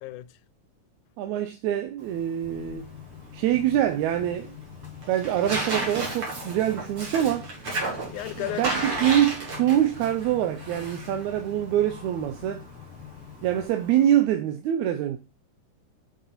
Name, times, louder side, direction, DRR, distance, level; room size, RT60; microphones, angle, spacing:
voice 1, 0.0-0.4 7.2-7.3 8.1-9.1, left 17 dB, 85° left, 2.0 m, -35 dB
voice 2, 1.2-2.9 3.3-4.5 5.1-7.5 8.4-12.6 13.4-15.2, right 11 dB, 80° right, 2.0 m, -25 dB
Tearing, 2.0-14.2, right 2 dB, 45° right, 3.3 m, -35 dB
sound 1, 2.4-13.7, left 10 dB, 60° left, 1.6 m, -45 dB
6.7 x 6.2 x 4.2 m
omnidirectional pair, 3.5 m